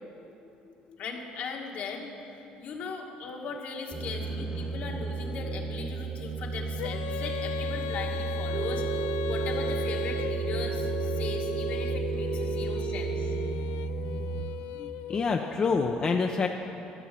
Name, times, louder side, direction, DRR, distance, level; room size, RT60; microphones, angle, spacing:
voice 1, 1.0-2.1 2.6-8.9 9.3-13.3, left 4 dB, 60° left, 0 dB, 1.8 m, -38 dB
sound 1, 3.9-14.4, right 4 dB, 20° right, 1.3 m, -34 dB
Female singing, 6.8-15.6, left 9 dB, 85° left, 0.4 m, -37 dB
Telephone, 8.5-13.5, right 7 dB, 45° right, 0.4 m, -34 dB
voice 2, 14.8-16.5, left 4 dB, 35° left, 3 dB, 0.7 m, -28 dB
14.0 x 8.0 x 7.4 m, 3.0 s
cardioid pair, 105°, 3 cm